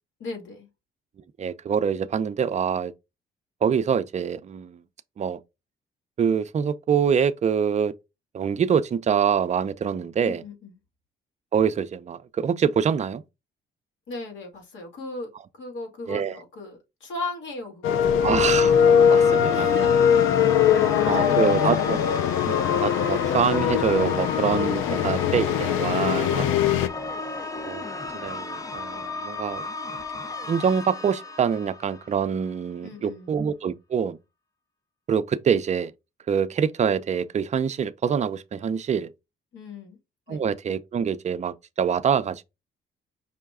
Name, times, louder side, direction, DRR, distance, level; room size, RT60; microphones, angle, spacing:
voice 1, 0.2-0.7 10.2-10.8 14.1-18.1 19.5-22.5 24.9-25.2 26.6-27.0 32.8-33.3 39.5-40.0 40.3-40.5, left 2 dB, 70° left, 2.0 m, -38 dB
voice 2, 1.4-2.9 3.6-4.8 5.2-5.4 6.2-7.9 8.3-10.4 11.5-13.2 16.1-16.3 18.2-18.7 19.1-19.7 20.8-22.0 22.4-26.5 27.6-27.9 28.1-29.6 30.5-34.2 35.1-35.9 36.3-39.1 40.3-42.4, right 7 dB, 35° right, 0.5 m, -25 dB
sound 1, 17.8-26.9, left 8 dB, 90° left, 0.5 m, -21 dB
sound 2, 18.0-32.4, left 3 dB, 15° left, 0.5 m, -34 dB
5.5 x 2.2 x 3.5 m
cardioid pair, 90°, 20 cm